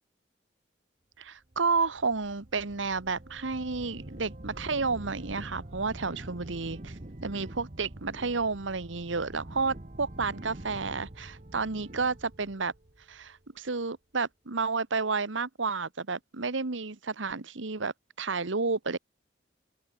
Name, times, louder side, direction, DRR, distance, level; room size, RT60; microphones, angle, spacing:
voice 1, 1.2-12.7 13.1-19.0, right 4 dB, 90° right, 1.3 m, -31 dB
sound 1, 1.5-13.6, right 1 dB, 40° right, 1.3 m, -45 dB
open air
head